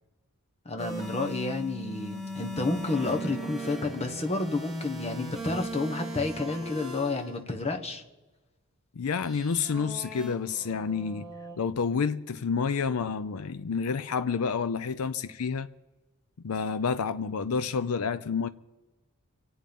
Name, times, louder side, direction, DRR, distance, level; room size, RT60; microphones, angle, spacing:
voice 1, 0.6-8.0, left 3 dB, 30° left, 1.4 m, -30 dB
sound 1, 0.8-7.3 9.2-11.6, equal, ahead, 2.8 m, -39 dB
voice 2, 9.0-11.3 11.6-15.7 16.4-18.5, left 5 dB, 85° left, 0.5 m, -29 dB
25.0 x 8.8 x 5.4 m
head